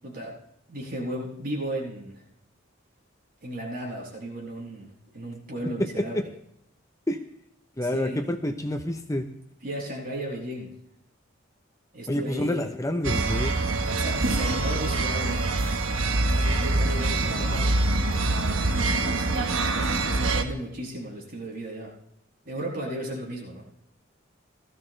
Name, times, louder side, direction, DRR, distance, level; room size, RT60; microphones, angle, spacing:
voice 1, 0.0-0.4 0.7-2.2 3.4-6.3 7.8-8.2 9.6-10.7 11.9-12.7 13.9-15.4 16.2-17.7 18.7-21.9 22.4-23.6, equal, 50° right, -4 dB, 7.5 m, -35 dB
voice 2, 7.8-9.3 12.1-13.6, left 1 dB, 15° left, 7 dB, 0.8 m, -28 dB
sound 1, 13.0-20.4, right 2 dB, 75° right, 1.3 m, -25 dB
19.0 x 14.5 x 3.3 m, 0.75 s
head